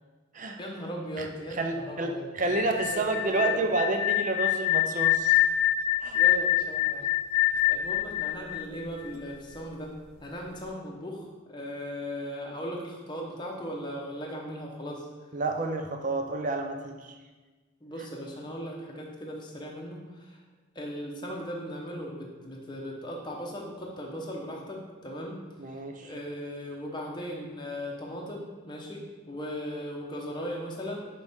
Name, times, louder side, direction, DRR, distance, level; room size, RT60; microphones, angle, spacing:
voice 1, 0.6-2.5 2.9-3.0 3.4-3.6 6.1-7.1 7.4-9.9 10.2-15.1 17.8-20.4 20.7-25.4 25.7-31.1, equal, 20° left, -2 dB, 0.8 m, -38 dB
voice 2, 1.6-5.4 6.0-6.2 15.3-17.2 25.6-26.1, right 2 dB, 40° right, 4 dB, 0.5 m, -30 dB
sound 1, 2.4-9.3, left 12 dB, 85° left, 0.5 m, -26 dB
6.7 x 4.8 x 3.6 m, 1.3 s
head